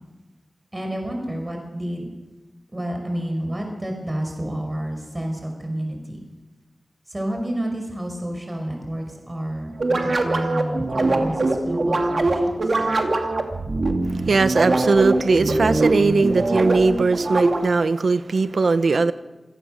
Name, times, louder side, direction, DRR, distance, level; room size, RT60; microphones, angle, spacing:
voice 1, 0.7-2.1 2.7-6.2 7.1-12.8, right 1 dB, 25° right, 3 dB, 5.4 m, -30 dB
sound 1, 9.8-17.9, right 2 dB, 60° right, 2.5 m, -22 dB
voice 2, 14.0-19.1, right 4 dB, 80° right, 12 dB, 1.0 m, -19 dB
27.0 x 18.0 x 6.6 m, 1.1 s
wide cardioid pair, 80°, 0 cm